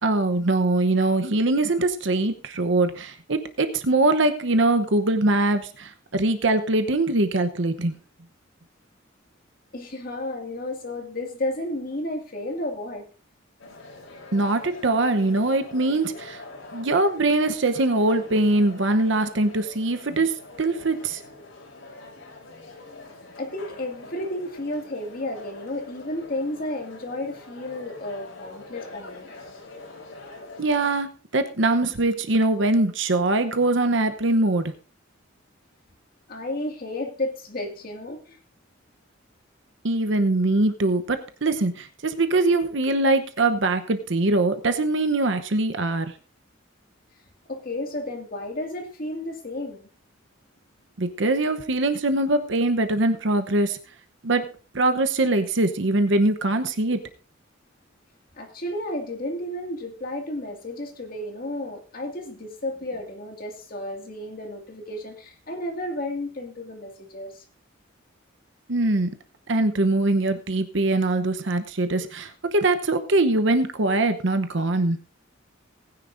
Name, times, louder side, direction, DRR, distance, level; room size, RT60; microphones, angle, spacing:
voice 1, 0.0-8.0 14.3-16.4 16.7-21.2 30.6-34.7 39.8-46.1 51.0-53.8 54.2-54.5 54.7-57.0 68.7-69.1 69.5-75.0, right 2 dB, 65° right, 8 dB, 0.9 m, -22 dB
voice 2, 9.7-13.1 23.4-29.3 36.3-38.4 47.5-49.9 58.3-67.4, left 1 dB, 45° left, 2 dB, 2.2 m, -32 dB
sound 1, 13.6-31.0, left 2 dB, 75° left, 3.9 m, -44 dB
19.0 x 10.0 x 2.6 m, 0.36 s
head